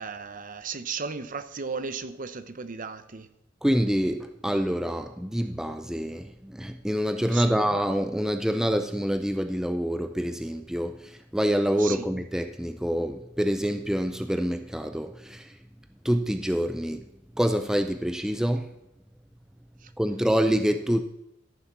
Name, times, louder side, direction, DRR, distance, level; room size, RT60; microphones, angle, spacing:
voice 1, 0.0-3.3 7.3-7.6 11.8-12.0 19.8-19.9, right 5 dB, 45° right, 0.7 m, -35 dB
voice 2, 3.6-15.5 16.0-17.1 17.4-18.7 20.0-21.0, equal, 5° right, 0.5 m, -26 dB
14.0 x 7.1 x 6.0 m
head